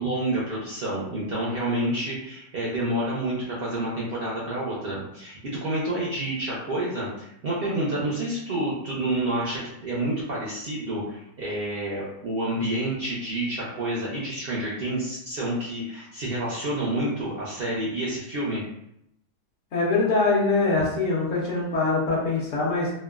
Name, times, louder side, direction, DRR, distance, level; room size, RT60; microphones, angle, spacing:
voice 1, 0.0-18.6, right 1 dB, 75° right, -6 dB, 0.5 m, -29 dB
voice 2, 19.7-22.9, left 3 dB, 60° left, -4 dB, 1.0 m, -23 dB
3.0 x 2.2 x 2.3 m, 0.79 s
omnidirectional pair, 1.7 m